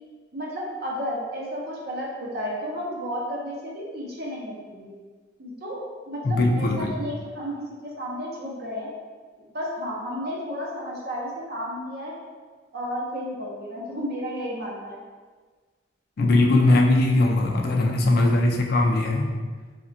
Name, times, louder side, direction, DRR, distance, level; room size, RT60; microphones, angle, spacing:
voice 1, 0.3-4.9 5.4-8.9 9.5-12.1 12.7-15.0, equal, 55° right, -3 dB, 0.7 m, -32 dB
voice 2, 6.2-6.9 16.2-19.3, left 2 dB, 55° left, 1 dB, 0.4 m, -20 dB
3.4 x 2.1 x 2.5 m, 1.4 s
head